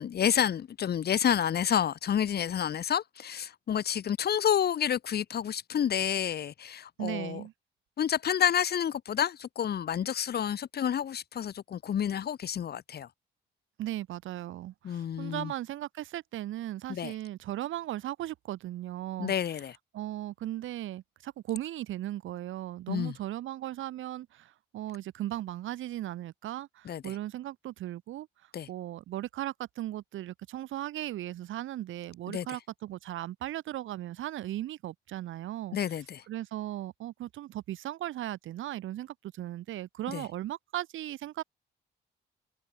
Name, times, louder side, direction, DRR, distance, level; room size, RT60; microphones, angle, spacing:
voice 1, 0.0-7.4 8.0-13.1 14.8-15.5 16.9-17.1 19.2-19.8 22.9-23.1 26.8-27.1 28.5-28.7 32.3-32.5 35.7-36.2 40.1-40.2, left 9 dB, 55° left, 1.3 m, -29 dB
voice 2, 7.0-7.5 13.8-19.3 19.9-28.3 28.7-35.8 36.3-41.4, right 13 dB, 80° right, 2.1 m, -37 dB
cardioid pair, 90°, 20 cm